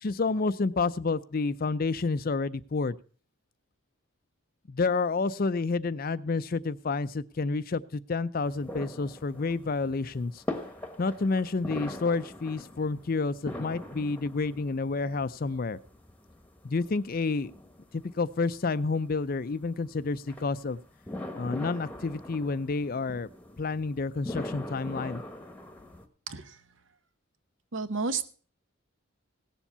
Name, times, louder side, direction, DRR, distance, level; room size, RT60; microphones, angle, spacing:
voice 1, 0.0-3.0 4.7-10.4 11.0-15.8 16.6-17.5 17.9-20.8 21.3-23.3 23.6-25.2, left 3 dB, 45° left, 16 dB, 0.5 m, -29 dB
sound 1, 8.4-26.0, left 1 dB, 5° left, 1.1 m, -42 dB
voice 2, 26.3-26.6 27.7-28.2, right 4 dB, 60° right, 12 dB, 0.9 m, -31 dB
17.0 x 7.3 x 5.5 m, 0.42 s
head